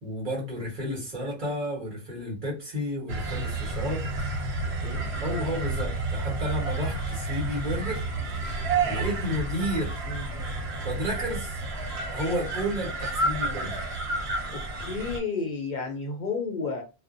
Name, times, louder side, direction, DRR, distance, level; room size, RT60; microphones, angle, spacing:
voice 1, 0.0-4.0 5.2-8.1 8.8-10.0 10.8-11.6 12.1-13.9, equal, 50° right, -3 dB, 1.2 m, -32 dB
sound 1, 3.1-15.2, right 3 dB, 85° right, 0.9 m, -30 dB
voice 2, 14.5-16.8, left 4 dB, 60° left, 3 dB, 0.6 m, -32 dB
2.4 x 2.0 x 2.5 m, 0.30 s
omnidirectional pair, 1.1 m